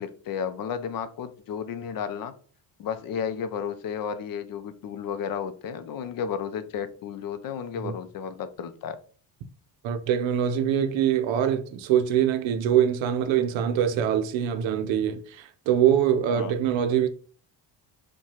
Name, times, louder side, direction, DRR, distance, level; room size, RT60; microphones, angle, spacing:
voice 1, 0.0-2.3 2.8-9.0 16.3-16.5, left 7 dB, 50° left, 0.5 m, -33 dB
voice 2, 9.8-17.1, right 9 dB, 90° right, 0.6 m, -24 dB
4.6 x 2.2 x 2.9 m
cardioid pair, 125°, 43 cm